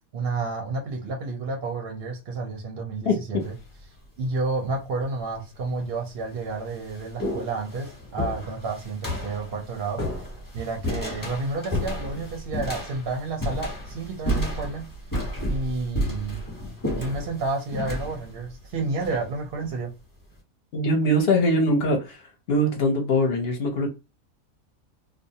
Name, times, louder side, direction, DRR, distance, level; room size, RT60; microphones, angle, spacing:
voice 1, 0.1-3.5 4.2-10.0 10.5-14.9 15.5-16.5 17.0-19.9, right 3 dB, 60° right, 0.7 m, -30 dB
sound 1, 3.4-3.8 4.8-4.9 5.7-5.8 6.2-19.7, equal, 15° left, 0.8 m, -32 dB
voice 2, 20.7-22.2 22.5-23.9, left 1 dB, 55° left, 0.8 m, -22 dB
2.5 x 2.1 x 2.7 m
omnidirectional pair, 1.5 m